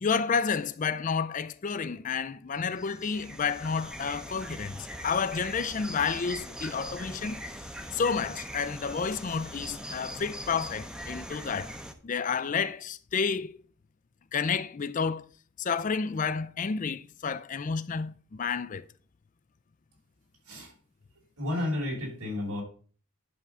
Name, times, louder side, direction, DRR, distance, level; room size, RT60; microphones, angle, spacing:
voice 1, 0.0-7.4 7.9-11.7 12.0-13.5 14.3-15.2 15.6-18.8, left 5 dB, 35° left, 0.4 m, -30 dB
sound 1, 2.6-11.9, equal, 5° right, 0.7 m, -41 dB
voice 2, 21.4-22.6, left 1 dB, 85° right, 5.0 m, -32 dB
10.5 x 3.7 x 6.8 m
head